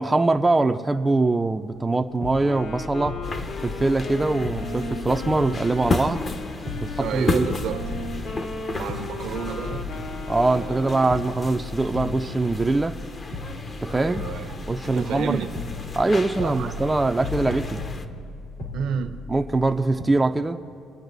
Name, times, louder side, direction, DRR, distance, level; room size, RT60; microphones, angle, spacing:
voice 1, 0.0-3.2 3.6-6.2 6.8-7.4 10.3-13.0 13.8-14.3 14.7-15.4 15.9-17.8 19.3-20.6, right 2 dB, 15° right, 5 dB, 0.5 m, -23 dB
sound 1, 1.7-1.9 2.2-4.1 4.4-6.3 6.7-8.5 8.9-10.8 11.1-13.0 13.3-15.2 15.5-19.7 20.0-20.1, left 2 dB, 80° left, 2.8 m, -37 dB
Wind instrument woodwind instrument, 2.3-11.3, left 2 dB, 60° left, 1.2 m, -36 dB
sound 2, 3.2-18.0, left 3 dB, 35° left, 0.9 m, -33 dB
voice 2, 7.0-8.1 8.7-9.9 10.5-11.0 13.9-14.5 14.8-15.5 16.4-16.7 18.7-19.2, right 8 dB, 70° right, 8 dB, 0.9 m, -31 dB
24.5 x 8.8 x 4.0 m, 2.5 s
cardioid pair, 90°, 0 cm